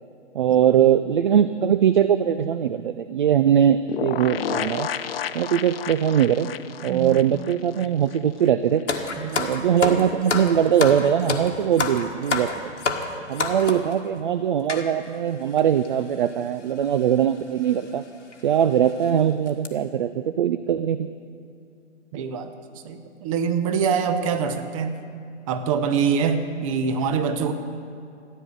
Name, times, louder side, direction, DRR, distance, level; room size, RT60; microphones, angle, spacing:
voice 1, 0.3-4.9 5.3-6.5 6.8-8.8 9.4-12.5 13.3-18.0 18.4-21.1, right 9 dB, 45° right, 12 dB, 0.4 m, -21 dB
sound 1, 3.9-8.5 8.8-8.9 9.1-9.2, left 9 dB, 55° left, 0.6 m, -31 dB
voice 2, 6.9-7.2 9.2-9.5 22.1-22.5 22.8-24.9 25.5-27.5, right 6 dB, 30° right, 9 dB, 0.8 m, -24 dB
sound 2, 8.9-13.9 14.7-14.9 15.6-15.7 15.8-16.0 17.0-17.2 17.7-17.8 18.3-18.4 18.9-19.1 19.5-19.7, left 4 dB, 80° left, 1.6 m, -27 dB
14.0 x 9.3 x 6.6 m, 2.5 s
figure-of-eight pair, 130°, 36 cm